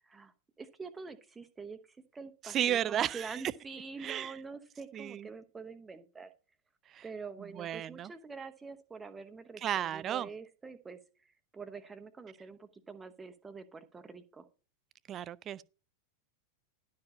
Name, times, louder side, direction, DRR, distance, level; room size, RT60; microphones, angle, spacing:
voice 1, 0.0-6.3 7.0-14.5, right 4 dB, 15° right, 1.0 m, -46 dB
voice 2, 2.4-3.4 4.0-4.3 4.9-5.3 6.9-7.0 7.4-8.1 9.6-10.3 15.1-15.6, right 10 dB, 30° right, 0.4 m, -33 dB
11.5 x 4.7 x 6.0 m
figure-of-eight pair, 90°, 0 cm